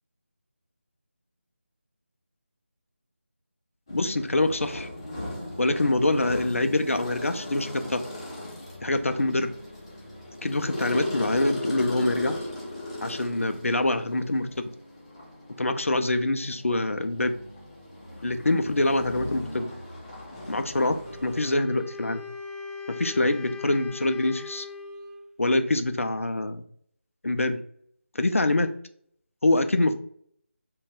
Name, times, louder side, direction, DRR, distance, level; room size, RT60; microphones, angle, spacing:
voice 1, 3.9-4.9 5.6-8.0 8.8-9.5 10.4-12.4 13.0-14.7 15.6-17.3 18.2-19.7 20.5-22.2 22.9-24.7 25.4-26.6 27.2-27.6 28.1-28.7 29.4-29.9, left 2 dB, 80° left, 8 dB, 0.4 m, -25 dB
sound 1, 3.9-21.5, left 1 dB, 25° left, 0.5 m, -38 dB
Wind instrument woodwind instrument, 21.0-25.3, left 6 dB, 15° right, 1.1 m, -40 dB
2.4 x 2.2 x 3.5 m, 0.63 s
figure-of-eight pair, 165°, 7 cm